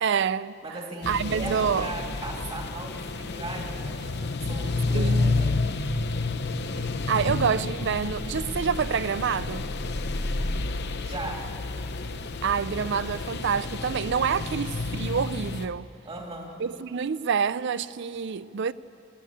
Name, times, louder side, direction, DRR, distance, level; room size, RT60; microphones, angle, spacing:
voice 1, 0.0-0.5 1.1-1.9 4.9-5.4 7.1-9.7 12.4-15.9 16.6-18.7, right 6 dB, 60° right, 0.4 m, -27 dB
voice 2, 0.6-5.5 11.0-11.4 16.0-16.5, right 2 dB, 30° right, 2.9 m, -37 dB
sound 1, 1.0-15.7, left 3 dB, 55° left, 0.8 m, -30 dB
24.5 x 13.5 x 8.6 m
head